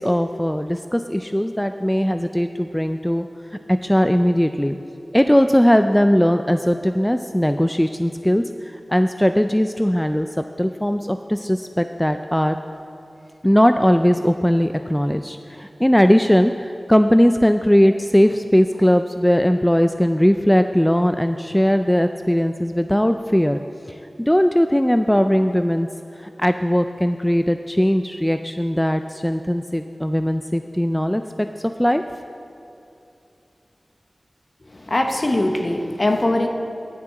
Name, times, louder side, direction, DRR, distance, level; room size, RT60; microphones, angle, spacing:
voice 1, 0.0-3.2 3.7-4.8 5.1-12.6 13.4-23.6 24.2-25.9 26.2-31.5 31.8-32.0, equal, 10° left, 8 dB, 0.4 m, -19 dB
voice 2, 34.6-36.5, left 1 dB, 45° left, 4 dB, 1.1 m, -21 dB
10.5 x 6.1 x 8.4 m, 2.7 s
wide cardioid pair, 55°, 0 cm